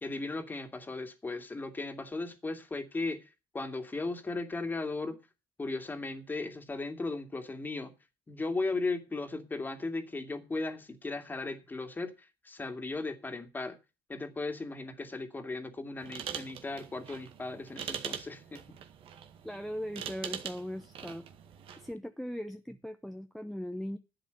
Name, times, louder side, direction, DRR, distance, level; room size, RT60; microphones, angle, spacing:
voice 1, 0.0-3.3 3.5-5.2 5.6-7.9 8.3-13.8 14.1-18.6, left 3 dB, 20° left, 2.3 m, -36 dB
sound 1, 16.0-21.9, right 9 dB, 60° right, 1.9 m, -43 dB
voice 2, 19.4-21.2 21.8-24.0, equal, ahead, 0.9 m, -39 dB
11.5 x 8.2 x 6.9 m
cardioid pair, 110°, 10 cm